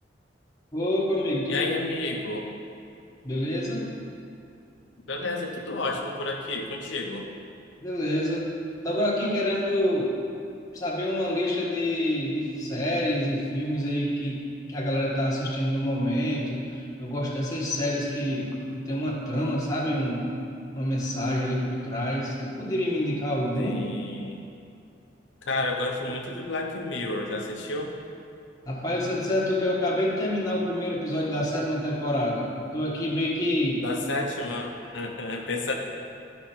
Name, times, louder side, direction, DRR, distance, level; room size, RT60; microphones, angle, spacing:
voice 1, 0.7-1.7 3.2-3.9 7.8-8.5 8.8-10.1 10.7-14.4 14.7-20.2 20.7-23.8 28.6-33.8, left 1 dB, 20° left, -6 dB, 1.5 m, -27 dB
voice 2, 1.5-2.5 5.1-7.3 23.6-24.4 25.5-27.9 33.8-35.7, left 2 dB, 85° left, 1 dB, 0.8 m, -31 dB
12.0 x 5.2 x 4.5 m, 2.5 s
head